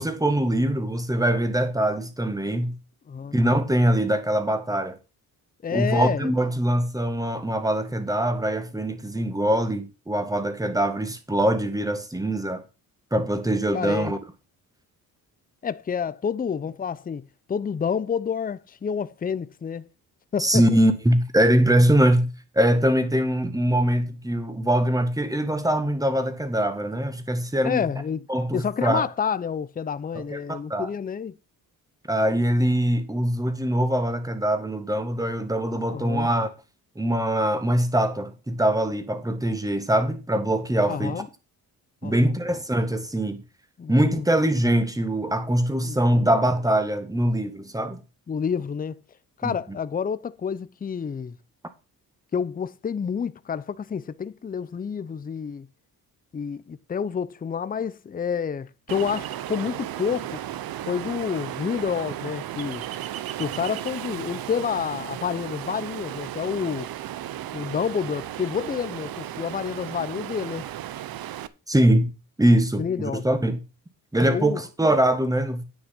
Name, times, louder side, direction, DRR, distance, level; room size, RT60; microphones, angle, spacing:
voice 1, 0.0-2.7 3.3-5.0 5.7-12.6 13.1-14.2 20.4-22.3 22.6-27.9 28.3-29.1 30.2-30.9 32.1-36.5 37.0-41.2 42.0-43.4 43.9-48.0 49.4-49.5 71.7-72.1 72.4-73.6 74.1-75.6, right 1 dB, 10° right, 1.9 m, -23 dB
voice 2, 5.6-6.3 13.7-14.1 15.6-17.2 17.5-19.9 20.3-20.6 27.6-28.3 28.5-31.3 35.9-36.3 40.9-41.3 42.0-42.3 43.8-44.3 45.8-46.3 48.3-49.0 49.4-51.4 52.3-55.7 56.3-60.4 60.8-62.8 63.4-66.9 67.5-70.7 72.8-73.2 74.2-74.6, left 7 dB, 25° left, 0.6 m, -29 dB
Ocean, 58.9-71.5, right 12 dB, 70° right, 0.9 m, -35 dB
9.8 x 6.3 x 6.0 m
cardioid pair, 100°, 37 cm